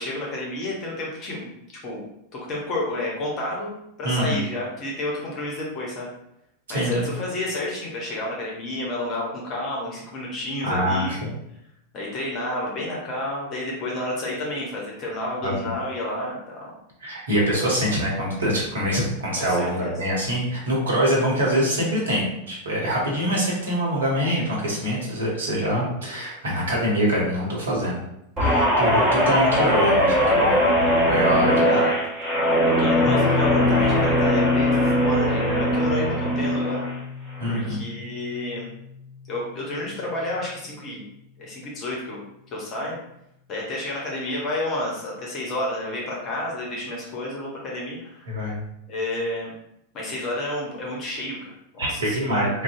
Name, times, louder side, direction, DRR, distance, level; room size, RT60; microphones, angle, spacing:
voice 1, 0.0-1.5 1.8-2.0 2.3-6.1 6.7-11.2 11.9-16.7 19.3-19.9 31.7-31.9 32.8-36.8 37.5-38.7 39.3-41.0 41.4-42.2 42.5-43.0 43.5-48.3 48.9-49.5 49.9-52.5, left 1 dB, 30° left, -3 dB, 0.7 m, -30 dB
voice 2, 4.0-4.4 6.7-7.1 10.6-11.3 15.4-15.5 17.0-28.0 28.4-30.6 31.1-31.8 37.4-37.8 48.3-48.6 51.8-52.6, equal, 65° right, -3 dB, 0.8 m, -24 dB
Guitar, 28.4-37.0 37.3-37.7, equal, 25° right, 1.2 m, -20 dB
Piano, 33.0-40.5, left 5 dB, ahead, 1.3 m, -31 dB
2.6 x 2.0 x 2.5 m, 0.80 s
figure-of-eight pair, 90°, 0 cm